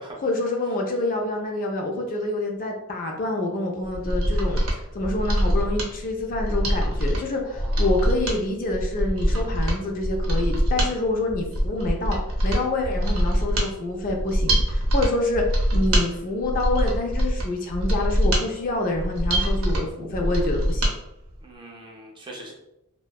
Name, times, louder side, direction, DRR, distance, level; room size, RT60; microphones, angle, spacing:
voice 1, 0.2-4.6 4.9-12.2 12.4-20.9, left 2 dB, 40° left, 1 dB, 0.4 m, -27 dB
Mechanisms, 3.9-20.9 21.3-21.4, equal, 70° right, 0.6 m, -24 dB
voice 2, 7.4-8.0 21.4-22.5, right 1 dB, 20° right, -1 dB, 0.4 m, -42 dB
2.6 x 2.1 x 2.2 m, 0.84 s
head